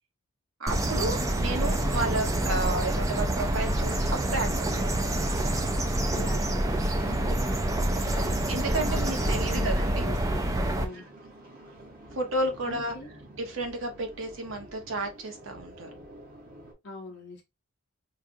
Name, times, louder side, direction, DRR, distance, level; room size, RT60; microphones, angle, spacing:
voice 1, 0.6-5.1 8.1-10.1 12.1-12.9 13.4-15.9, right 2 dB, 65° right, 1.0 m, -32 dB
sound 1, 0.7-10.8, right 1 dB, 15° right, 0.3 m, -27 dB
sound 2, 1.0-16.7, right 1 dB, 40° right, 1.0 m, -48 dB
voice 2, 6.0-8.3 8.9-9.7 10.0-11.1 12.6-13.1 16.8-17.4, left 2 dB, 50° left, 0.7 m, -42 dB
4.5 x 2.3 x 2.5 m
head